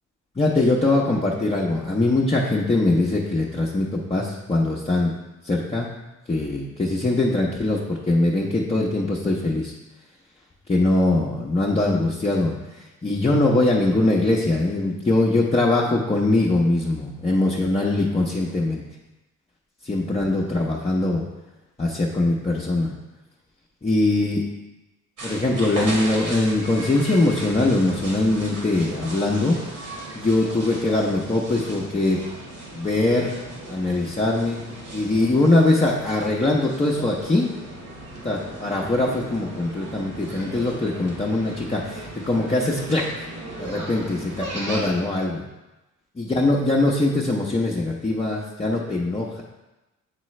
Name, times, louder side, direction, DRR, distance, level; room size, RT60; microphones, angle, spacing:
voice 1, 0.4-5.1 5.4-5.9 6.3-9.7 10.7-12.5 13.0-18.8 19.8-21.2 21.8-22.9 23.8-24.4 25.2-29.6 30.1-32.2 32.7-33.4 33.7-34.6 34.9-37.5 38.2-43.3 43.6-45.4 46.2-49.4, left 2 dB, 20° left, -5 dB, 0.8 m, -22 dB
sound 1, 25.2-45.0, right 1 dB, 70° right, 1.8 m, -36 dB
8.3 x 3.7 x 3.2 m, 1.0 s
cardioid pair, 90°, 30 cm